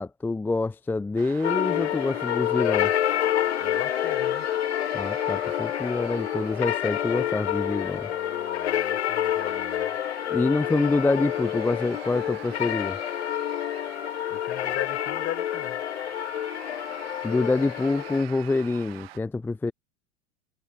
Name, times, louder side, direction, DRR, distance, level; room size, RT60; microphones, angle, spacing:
voice 1, 0.0-2.9 4.9-8.1 10.3-13.0 17.2-19.7, left 3 dB, 5° left, 0.6 m, -26 dB
sound 1, 1.2-19.2, right 16 dB, 55° right, 2.5 m, -46 dB
sound 2, 1.4-18.2, left 11 dB, 65° left, 0.8 m, -28 dB
voice 2, 3.6-4.5 8.0-9.9 14.3-15.8, left 12 dB, 30° left, 5.0 m, -38 dB
figure-of-eight pair, 85°, 36 cm